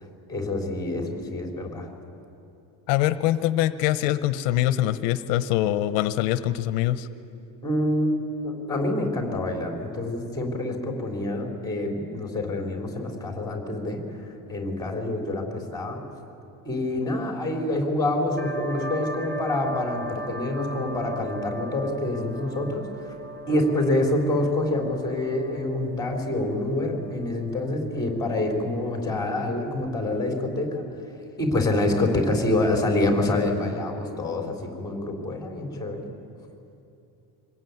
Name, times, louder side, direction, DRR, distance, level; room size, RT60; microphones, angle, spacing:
voice 1, 0.3-1.9 7.6-8.1 8.4-16.0 16.7-22.8 23.5-30.8 31.4-36.1, left 1 dB, 10° left, 1 dB, 3.5 m, -26 dB
voice 2, 2.9-7.1, left 13 dB, 65° left, 12 dB, 1.0 m, -23 dB
sound 1, 18.4-29.7, right 2 dB, 20° right, 1.1 m, -39 dB
25.5 x 20.0 x 9.4 m, 2.7 s
cardioid pair, 175°, 45 cm